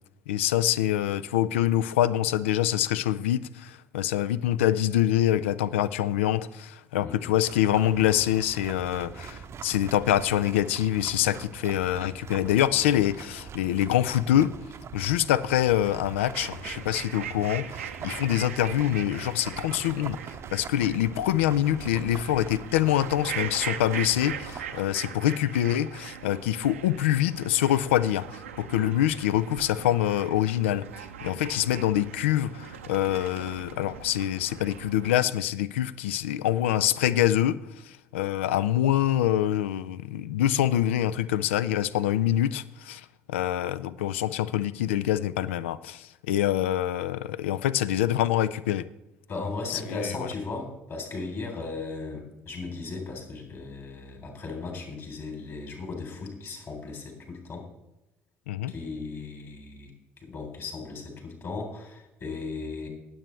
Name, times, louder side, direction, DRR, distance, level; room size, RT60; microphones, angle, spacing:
voice 1, 0.3-14.5 14.9-20.2 20.5-28.3 28.6-30.8 31.2-37.6 38.1-43.0 43.3-48.9 49.7-50.1 58.5-58.7, left 12 dB, 70° left, 16 dB, 0.4 m, -25 dB
voice 2, 7.0-7.3 49.3-57.7 58.7-59.9 60.2-62.9, left 3 dB, 40° left, 3 dB, 3.4 m, -36 dB
sound 1, 7.5-24.8, right 7 dB, 40° right, 0.7 m, -43 dB
sound 2, 16.2-35.1, right 8 dB, 80° right, 0.7 m, -40 dB
18.5 x 7.8 x 3.2 m, 0.95 s
figure-of-eight pair, 50°, 7 cm